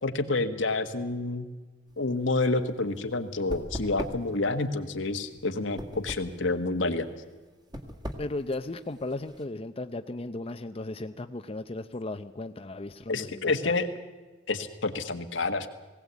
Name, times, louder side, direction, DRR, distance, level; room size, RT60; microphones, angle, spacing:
voice 1, 0.0-1.5 2.0-7.1 13.1-13.9 14.5-15.7, left 3 dB, 85° left, 6 dB, 1.6 m, -28 dB
sound 1, 1.9-9.4, equal, 25° right, 1.9 m, -41 dB
voice 2, 8.2-13.7, left 2 dB, 30° left, 8 dB, 0.6 m, -36 dB
20.0 x 17.0 x 8.3 m, 1.3 s
head